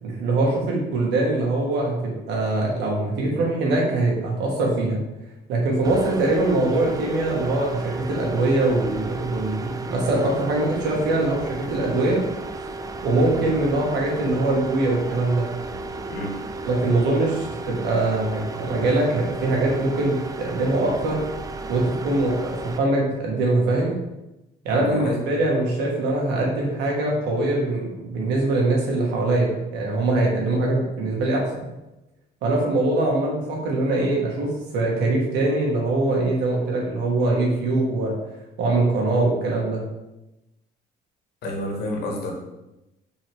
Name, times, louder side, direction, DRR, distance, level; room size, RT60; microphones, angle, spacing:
voice 1, 0.0-5.0 5.5-12.2 13.0-15.5 16.7-21.2 21.7-23.9 24.6-31.6 32.4-38.1 38.6-39.8, right 2 dB, 85° right, -2 dB, 2.0 m, -22 dB
sound 1, 5.8-22.8, right 2 dB, 20° right, 0.5 m, -34 dB
voice 2, 16.1-16.4 24.7-25.2 41.4-42.4, left 1 dB, 70° left, 0 dB, 1.8 m, -29 dB
5.8 x 4.7 x 3.7 m, 0.96 s
cardioid pair, 110°, 17 cm